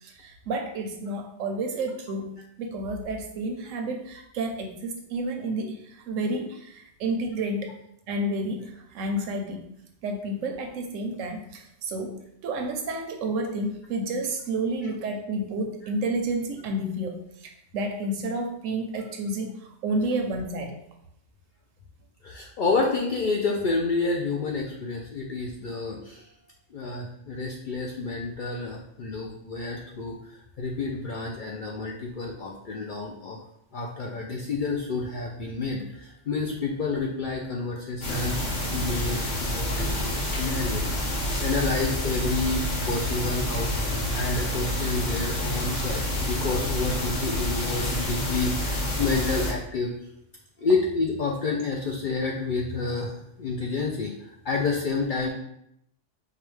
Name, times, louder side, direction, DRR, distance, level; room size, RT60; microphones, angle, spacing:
voice 1, 0.0-2.3 2.6-7.7 8.1-9.6 10.0-12.2 12.4-17.2 17.4-19.6 19.8-20.7, right 2 dB, 85° right, 4 dB, 1.0 m, -30 dB
voice 2, 22.2-26.2 26.7-30.2 30.6-33.4 33.7-38.4 38.7-41.1 41.4-49.9 50.6-55.3, left 3 dB, 65° left, -1 dB, 0.5 m, -29 dB
sound 1, 38.0-49.5, left 1 dB, 80° left, 1.5 m, -28 dB
4.8 x 2.3 x 3.1 m, 0.75 s
omnidirectional pair, 1.3 m